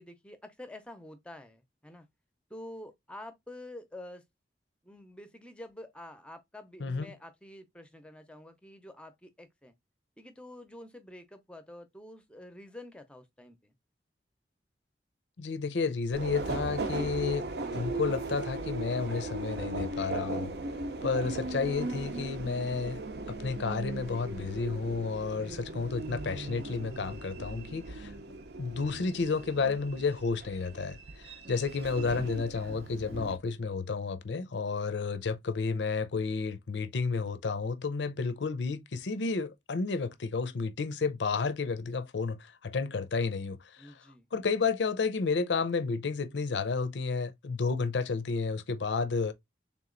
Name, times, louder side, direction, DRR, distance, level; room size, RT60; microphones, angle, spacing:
voice 1, 0.0-2.1 2.5-4.2 4.8-9.7 10.2-13.7 43.8-44.3, left 1 dB, 5° left, 0.6 m, -48 dB
voice 2, 6.8-7.1 15.4-17.5 17.7-20.5 21.0-23.0 23.3-28.1 28.6-43.9 44.3-49.3, left 4 dB, 90° left, 0.6 m, -31 dB
Subway metro underground, 16.1-33.4, right 2 dB, 65° right, 0.6 m, -38 dB
3.6 x 2.9 x 3.8 m
head